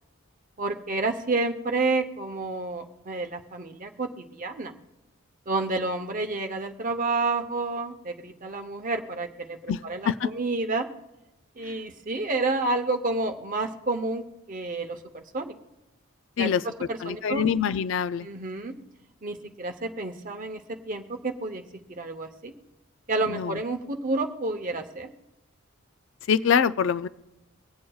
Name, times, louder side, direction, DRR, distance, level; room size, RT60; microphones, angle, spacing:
voice 1, 0.6-4.7 5.5-10.9 11.6-14.2 14.5-15.5 16.4-17.4 18.2-18.7 19.2-21.6 21.9-22.5 23.1-25.1, right 3 dB, 40° right, 5 dB, 0.8 m, -30 dB
voice 2, 17.0-18.3 23.3-23.5 26.3-27.1, left 7 dB, 60° left, 15 dB, 0.3 m, -24 dB
24.5 x 8.4 x 2.3 m, 0.96 s
head